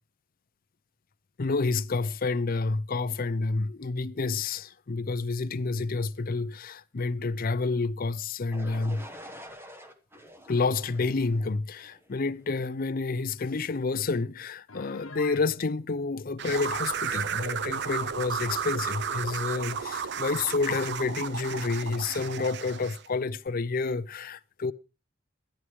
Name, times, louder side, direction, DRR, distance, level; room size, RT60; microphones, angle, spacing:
voice 1, 1.4-9.1 10.5-24.7, left 3 dB, 45° left, 0.5 m, -29 dB
sound 1, 8.5-12.4, equal, 10° right, 1.2 m, -47 dB
Piano, 14.7-15.5, left 4 dB, 85° left, 1.1 m, -44 dB
sound 2, 16.4-23.1, right 7 dB, 55° right, 0.5 m, -33 dB
12.5 x 10.5 x 4.7 m
head